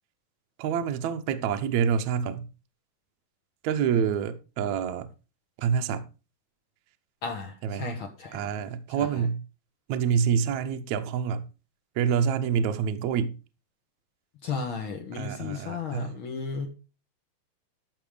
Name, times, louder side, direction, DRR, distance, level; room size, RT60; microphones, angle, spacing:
voice 1, 0.6-2.5 3.6-5.1 5.6-6.0 7.6-7.9 8.3-9.4 9.9-11.5 11.9-13.3 15.1-16.1, right 7 dB, 85° right, 1.6 m, -27 dB
voice 2, 7.2-8.5 9.0-9.2 14.4-16.7, left 5 dB, 90° left, 1.1 m, -34 dB
14.0 x 6.1 x 5.1 m
omnidirectional pair, 4.8 m